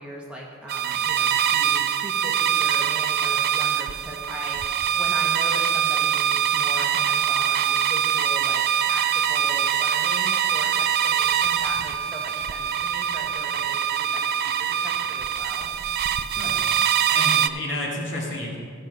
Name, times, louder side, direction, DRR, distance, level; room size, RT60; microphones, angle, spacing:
voice 1, 0.0-15.7, equal, 5° right, -3 dB, 1.3 m, -39 dB
sound 1, 0.7-17.5, right 9 dB, 45° right, 0.3 m, -23 dB
voice 2, 16.3-16.6 17.1-18.6, left 1 dB, 55° left, -2 dB, 2.1 m, -31 dB
14.5 x 5.9 x 5.3 m, 2.3 s
head